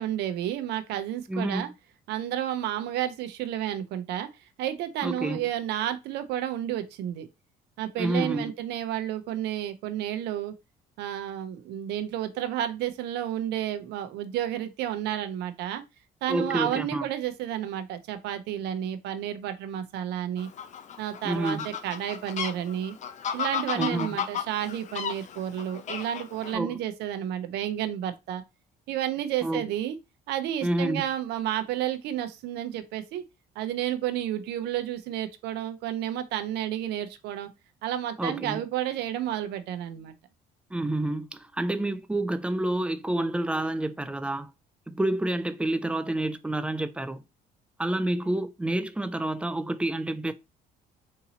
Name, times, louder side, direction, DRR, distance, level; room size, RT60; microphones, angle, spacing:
voice 1, 0.0-1.7 2.1-4.3 4.6-7.3 7.8-10.5 11.0-15.8 16.2-20.5 21.0-22.9 23.3-28.4 28.9-30.0 30.3-33.2 33.6-37.5 37.8-40.1, right 11 dB, 80° right, 0.6 m, -31 dB
voice 2, 1.3-1.7 5.0-5.4 8.0-8.5 16.3-17.1 21.2-21.7 23.7-24.1 26.5-26.8 29.4-29.7 30.6-31.0 38.2-38.6 40.7-44.5 44.9-47.2 47.8-50.3, right 1 dB, 5° right, 0.3 m, -28 dB
Fowl, 20.4-26.5, left 8 dB, 45° left, 0.5 m, -34 dB
3.9 x 2.7 x 2.8 m
cardioid pair, 110°, 17 cm